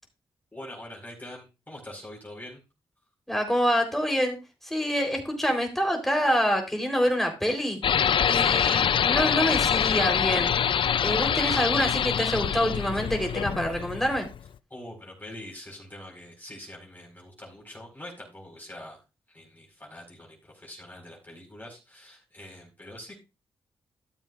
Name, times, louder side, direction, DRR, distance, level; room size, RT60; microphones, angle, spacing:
voice 1, 0.5-2.6 8.3-8.8 11.3-11.6 14.7-19.0 19.3-23.2, left 1 dB, 20° left, -1 dB, 4.6 m, -44 dB
voice 2, 3.3-4.4 4.6-7.8 8.3-10.5 11.0-14.3, equal, 5° left, 2 dB, 3.8 m, -26 dB
sound 1, 7.8-14.5, left 8 dB, 65° left, 0.5 m, -25 dB
13.5 x 7.5 x 2.5 m, 0.28 s
cardioid pair, 55°, 9 cm